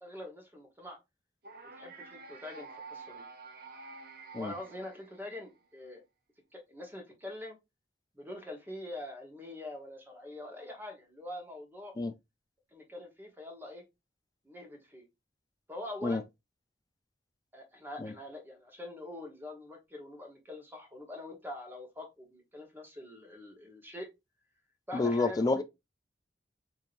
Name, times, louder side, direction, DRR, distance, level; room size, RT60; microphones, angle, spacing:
voice 1, 0.0-1.0 1.7-3.2 4.4-6.0 6.5-7.6 8.2-11.9 12.7-13.8 14.4-15.0 15.7-16.3 17.5-24.1 24.9-25.6, left 1 dB, 10° right, 1.0 m, -44 dB
sound 1, 1.4-5.6, right 4 dB, 55° right, 0.7 m, -49 dB
voice 2, 24.9-25.6, left 3 dB, 20° left, 0.3 m, -29 dB
4.6 x 2.7 x 2.5 m
head